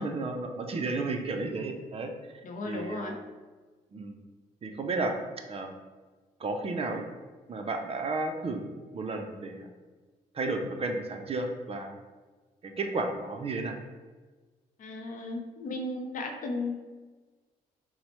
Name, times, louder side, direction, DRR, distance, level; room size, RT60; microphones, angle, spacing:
voice 1, 0.0-2.1 2.6-3.2 3.9-4.2 4.6-5.1 5.5-5.7 6.4-7.0 7.5-8.6 8.9-9.7 10.3-11.9 12.6-13.8, right 3 dB, 35° right, 4 dB, 0.4 m, -32 dB
voice 2, 2.4-3.1 14.8-16.8, left 2 dB, 55° left, 3 dB, 0.5 m, -35 dB
4.1 x 2.0 x 2.9 m, 1.3 s
supercardioid pair, 70°, 16 cm